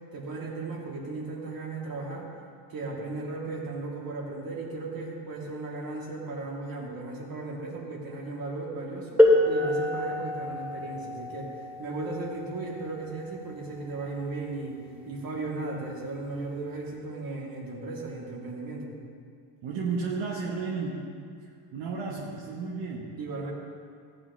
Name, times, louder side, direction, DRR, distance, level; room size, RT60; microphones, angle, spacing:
voice 1, 0.1-2.3 2.7-14.8 15.0-19.0 23.2-23.5, right 3 dB, 45° right, -3 dB, 2.9 m, -36 dB
sound 1, 9.2-14.6 15.7-15.8 16.6-16.8, left 1 dB, 5° right, 3.0 m, -27 dB
voice 2, 19.6-21.2 21.4-23.2, right 4 dB, 70° right, -2 dB, 1.3 m, -33 dB
14.5 x 10.5 x 3.2 m, 2.2 s
supercardioid pair, 85°, 47 cm